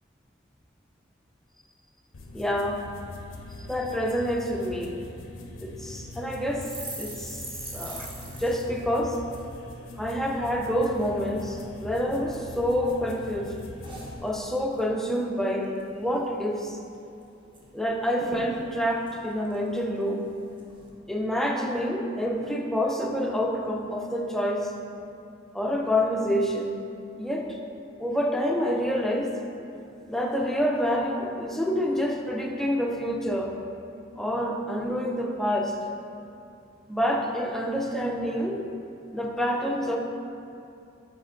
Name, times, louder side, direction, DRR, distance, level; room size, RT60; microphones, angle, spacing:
sound 1, 2.1-14.1, left 2 dB, 90° left, 0.7 m, -42 dB
voice 1, 2.3-2.8 3.7-4.9 5.6-6.7 7.0-7.4 7.7-8.1 8.4-9.2 10.0-13.6 14.2-16.8 17.7-20.3 21.1-24.7 25.5-26.8 27.2-27.6 28.0-29.3 30.1-33.6 34.2-35.8 36.9-38.7 39.1-40.0, equal, ahead, 0 dB, 0.4 m, -27 dB
sound 2, 6.6-10.1 10.5-10.7 10.9-11.6 12.1-12.9 13.2-14.9 15.2-15.4 15.6-16.2 16.6-16.7 16.9-17.6 17.9-18.0 18.2-20.1 20.6-20.9, right 2 dB, 25° right, 0.8 m, -43 dB
8.5 x 3.2 x 3.8 m, 2.7 s
head